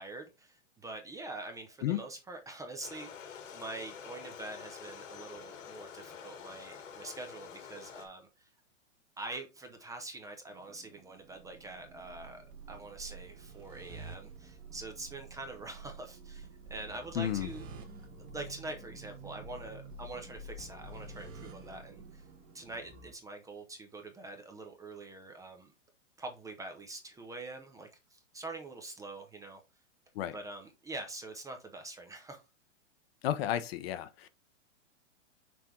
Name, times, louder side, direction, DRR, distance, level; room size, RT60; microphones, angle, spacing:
voice 1, 0.0-8.5 9.2-17.6 18.2-22.3 22.5-25.7 26.2-29.6 30.3-32.4, right 2 dB, 10° right, 0.7 m, -45 dB
sound 1, 2.8-8.1, left 7 dB, 85° left, 2.2 m, -48 dB
sound 2, 10.5-23.1, right 2 dB, 25° right, 1.4 m, -49 dB
voice 2, 17.1-17.5 30.1-30.3 33.2-34.3, left 11 dB, 50° left, 0.8 m, -32 dB
6.1 x 3.4 x 4.5 m
hypercardioid pair, 135°, 38 cm